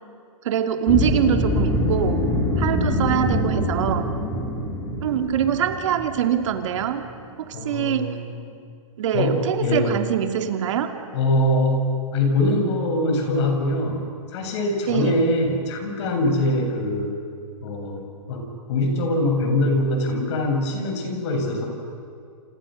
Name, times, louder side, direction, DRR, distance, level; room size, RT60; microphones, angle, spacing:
voice 1, 0.4-2.2 2.6-4.1 5.0-7.0 7.4-8.2 9.0-10.9 14.9-15.2, right 9 dB, 60° right, 5 dB, 2.7 m, -23 dB
sound 1, 0.9-7.1, left 1 dB, 20° left, 4.3 m, -24 dB
voice 2, 7.5-8.6 9.1-10.0 11.1-11.9 12.1-14.0 14.3-17.2 17.6-18.4 18.7-21.7, left 1 dB, 50° left, 3 dB, 7.5 m, -23 dB
29.5 x 28.0 x 6.5 m, 2.3 s
hypercardioid pair, 140°, 18 cm